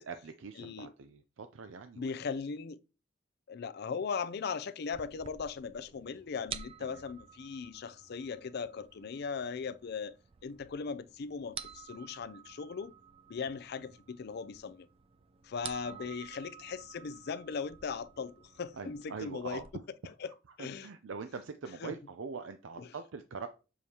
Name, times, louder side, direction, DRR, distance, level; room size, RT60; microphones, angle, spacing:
voice 1, 0.0-2.1 6.8-7.0 15.9-16.1 18.8-19.7 20.8-23.5, right 5 dB, 85° right, 0.5 m, -43 dB
voice 2, 0.6-0.9 2.0-2.8 3.5-10.1 10.4-12.9 13.3-14.9 15.4-19.6 20.2-20.3 20.6-20.9 21.8-22.0 22.8-22.9, left 5 dB, 55° left, 0.4 m, -38 dB
sound 1, 4.9-19.7, right 7 dB, 30° right, 0.4 m, -50 dB
7.0 x 4.7 x 2.8 m
head